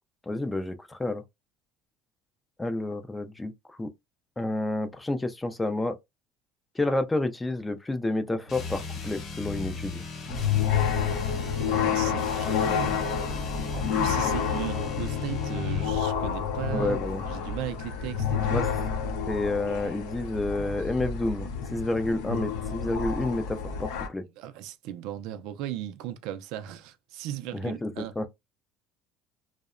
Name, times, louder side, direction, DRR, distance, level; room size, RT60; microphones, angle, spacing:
voice 1, 0.3-1.2 2.6-3.5 3.8-3.9 4.4-6.0 6.8-10.0 16.7-17.2 18.5-18.7 19.3-24.2 27.5-28.3, left 2 dB, 10° left, 0.3 m, -29 dB
sound 1, 8.5-16.0, left 3 dB, 45° left, 0.8 m, -37 dB
sound 2, 10.3-24.1, left 7 dB, 85° left, 0.5 m, -29 dB
voice 2, 11.5-13.0 13.7-18.7 24.4-28.3, right 12 dB, 70° right, 0.3 m, -37 dB
2.7 x 2.0 x 2.4 m
cardioid pair, 125°, 0 cm